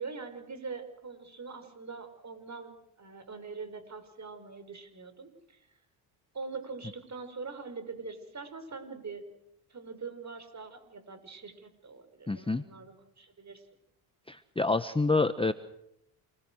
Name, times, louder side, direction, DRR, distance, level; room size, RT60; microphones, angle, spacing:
voice 1, 0.0-5.6 6.3-9.2 9.7-13.6, right 4 dB, 35° right, 9 dB, 6.1 m, -43 dB
voice 2, 12.3-12.6 14.3-15.5, left 3 dB, 10° left, 12 dB, 1.2 m, -27 dB
28.0 x 21.5 x 6.5 m, 0.80 s
supercardioid pair, 70°, 47 cm